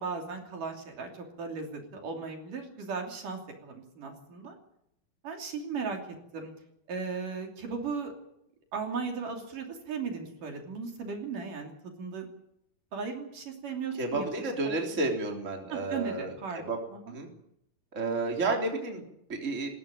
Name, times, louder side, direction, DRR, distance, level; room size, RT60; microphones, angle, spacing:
voice 1, 0.0-4.6 5.2-6.0 6.3-6.5 6.9-8.1 8.7-12.2 12.9-15.0 15.7-16.6 16.9-17.2, right 5 dB, 60° right, 2 dB, 4.4 m, -37 dB
voice 2, 13.9-16.8 17.1-17.3 17.9-19.7, right 3 dB, 20° right, 2 dB, 3.5 m, -31 dB
21.0 x 16.0 x 9.0 m, 0.77 s
omnidirectional pair, 4.3 m